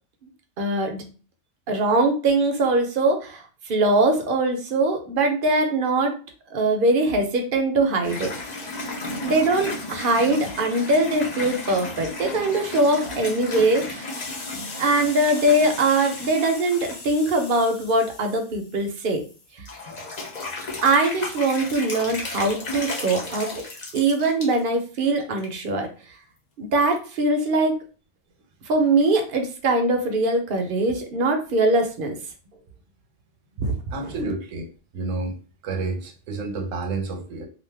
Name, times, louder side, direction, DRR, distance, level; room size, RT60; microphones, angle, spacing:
voice 1, 0.6-1.0 1.7-6.1 6.5-8.3 8.8-8.9 9.2-14.2 14.8-19.2 20.8-23.6 23.9-25.9 26.6-27.8 28.7-32.2 33.6-33.7 34.1-34.2, right 2 dB, 55° right, 4 dB, 0.7 m, -22 dB
sound 1, 8.0-19.3 19.7-24.6 25.1-25.5 25.8-25.9 26.9-27.0, left 2 dB, 45° left, 0.6 m, -34 dB
voice 2, 33.9-35.4 35.6-37.5, right 3 dB, 75° right, 3 dB, 1.1 m, -30 dB
2.5 x 2.4 x 3.3 m, 0.36 s
omnidirectional pair, 1.3 m